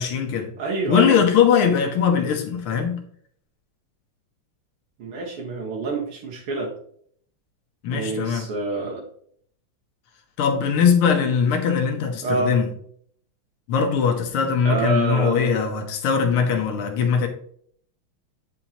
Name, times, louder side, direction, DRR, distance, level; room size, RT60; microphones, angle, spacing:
voice 1, 0.0-0.5 0.9-3.0 7.8-8.5 10.4-12.7 13.7-17.3, left 7 dB, 85° left, 1.9 m, -20 dB
voice 2, 0.6-1.3 5.0-6.7 7.9-9.0 12.2-12.6 14.6-15.5, right 3 dB, 85° right, 2.3 m, -27 dB
8.8 x 5.7 x 2.8 m
omnidirectional pair, 2.3 m